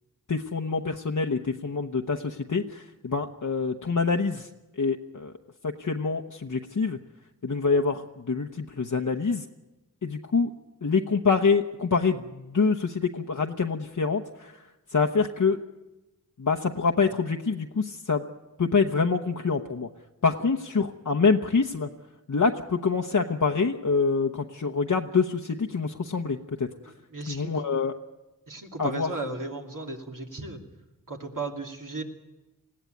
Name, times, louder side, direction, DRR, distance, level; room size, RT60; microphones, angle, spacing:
voice 1, 0.3-5.3 5.6-7.0 7.4-9.5 10.0-10.5 10.8-15.6 16.4-18.3 18.6-19.9 20.2-21.9 22.3-26.9 27.3-27.9 28.8-29.1, left 4 dB, 60° left, 3 dB, 1.0 m, -26 dB
voice 2, 26.9-27.5 28.5-30.6 31.1-32.0, right 3 dB, 65° right, 2 dB, 2.8 m, -35 dB
20.5 x 15.5 x 9.3 m, 1.0 s
wide cardioid pair, 40°, 35 cm